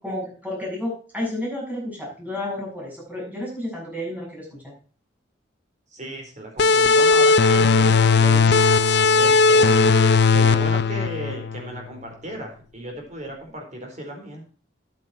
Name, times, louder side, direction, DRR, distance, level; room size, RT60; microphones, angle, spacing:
voice 1, 0.0-4.7, left 1 dB, 10° right, -3 dB, 6.9 m, -31 dB
voice 2, 5.9-8.7 9.1-14.4, right 1 dB, 40° right, 2 dB, 4.5 m, -35 dB
sound 1, 6.6-11.9, left 4 dB, 65° left, 0.6 m, -17 dB
10.5 x 9.3 x 4.6 m, 0.39 s
head